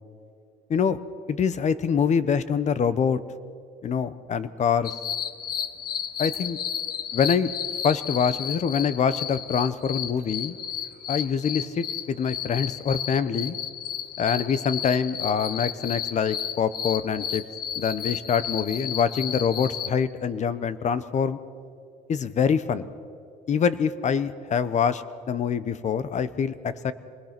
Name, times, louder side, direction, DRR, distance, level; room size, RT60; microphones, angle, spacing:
voice 1, 1.3-3.2 3.8-4.9 6.2-6.6 7.1-7.5 7.8-10.6 11.1-13.6 14.2-17.4 17.7-21.4 22.1-22.9 23.5-26.9, left 7 dB, 45° left, 15 dB, 1.0 m, -25 dB
sound 1, 4.8-19.9, left 9 dB, 65° left, 1.2 m, -32 dB
26.5 x 20.5 x 6.0 m, 2.4 s
cardioid pair, 110°, 17 cm